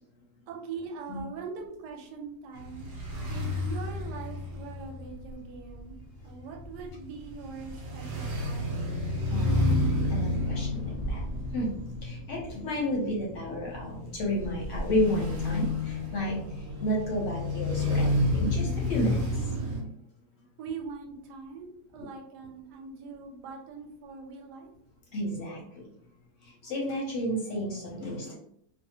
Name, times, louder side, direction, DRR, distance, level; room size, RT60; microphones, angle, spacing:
voice 1, 0.5-2.9 3.3-6.0 6.2-8.9 20.6-24.7, right 5 dB, 90° right, 2 dB, 1.2 m, -42 dB
sound 1, 2.6-19.8, left 1 dB, 55° right, 0.8 m, -31 dB
voice 2, 9.3-11.3 11.5-19.4 25.1-25.9 26.4-28.4, equal, 60° left, -3 dB, 0.8 m, -32 dB
2.6 x 2.3 x 2.7 m, 0.69 s
omnidirectional pair, 1.7 m